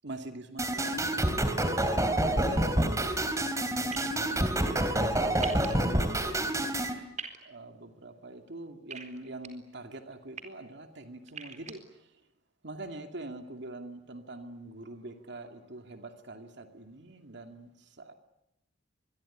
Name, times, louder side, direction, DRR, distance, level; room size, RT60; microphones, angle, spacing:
voice 1, 0.0-3.4 3.7-6.6 7.4-11.8 12.6-18.1, right 2 dB, 65° right, 6 dB, 2.4 m, -45 dB
sound 1, 0.6-6.9, right 1 dB, 15° right, 3.3 m, -28 dB
sound 2, 3.9-4.1 5.4-5.7 7.2-7.4 8.9-9.5 10.1-10.4 11.3-11.7, right 6 dB, 40° right, 4.1 m, -39 dB
26.0 x 22.5 x 9.9 m, 0.87 s
head